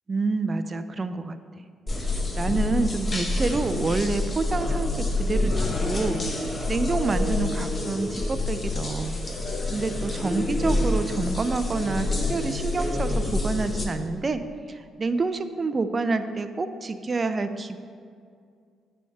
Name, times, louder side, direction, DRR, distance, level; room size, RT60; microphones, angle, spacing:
voice 1, 0.1-1.4 2.0-9.2 9.7-14.4 14.7-17.8, right 3 dB, 30° right, 10 dB, 0.4 m, -28 dB
sound 1, 1.9-13.9, left 2 dB, 25° left, 0.9 m, -27 dB
9.1 x 3.3 x 5.6 m, 2.2 s
cardioid pair, 90°, 0 cm